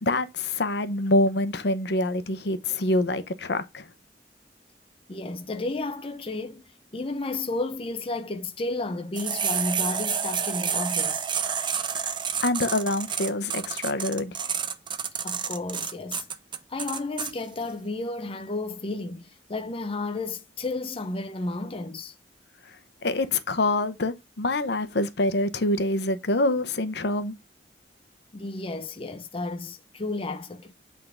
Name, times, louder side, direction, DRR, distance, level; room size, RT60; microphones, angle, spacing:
voice 1, 0.0-3.9 12.4-14.4 23.0-27.3, left 2 dB, 70° left, 0.9 m, -25 dB
voice 2, 5.1-6.6 6.9-11.2 15.2-16.3 16.7-22.1 28.3-30.8, left 2 dB, 30° left, 0.7 m, -32 dB
sound 1, 9.2-17.3, right 7 dB, 25° right, 0.6 m, -29 dB
8.2 x 3.7 x 5.0 m
head